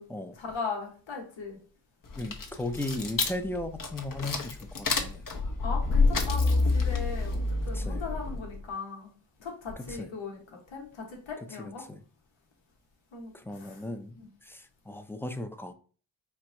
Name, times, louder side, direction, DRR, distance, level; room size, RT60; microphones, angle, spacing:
voice 1, 0.3-1.6 2.8-2.9 5.6-9.1 9.4-11.8 13.1-13.8 14.2-14.3, left 4 dB, 85° left, 0 dB, 1.3 m, -39 dB
sound 1, 2.1-8.6, left 3 dB, 45° left, 0.9 m, -28 dB
voice 2, 2.2-5.2 7.7-8.0 9.9-10.1 11.6-12.0 13.3-14.1 14.4-15.7, left 1 dB, 5° left, 8 dB, 0.5 m, -36 dB
4.6 x 2.9 x 3.3 m, 0.40 s
cardioid pair, 50°, 45 cm